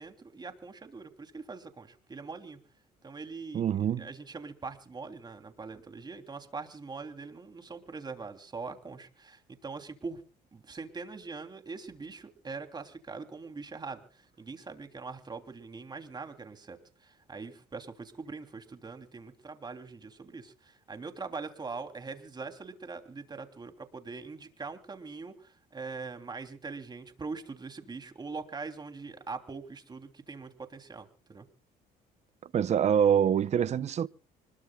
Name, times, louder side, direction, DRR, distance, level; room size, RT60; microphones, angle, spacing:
voice 1, 0.0-2.6 3.0-10.2 10.5-31.5, right 4 dB, 25° right, 3.2 m, -42 dB
voice 2, 3.5-4.1 32.5-34.1, right 8 dB, 40° right, 0.7 m, -25 dB
25.5 x 21.0 x 2.3 m
cardioid pair, 110°, 17 cm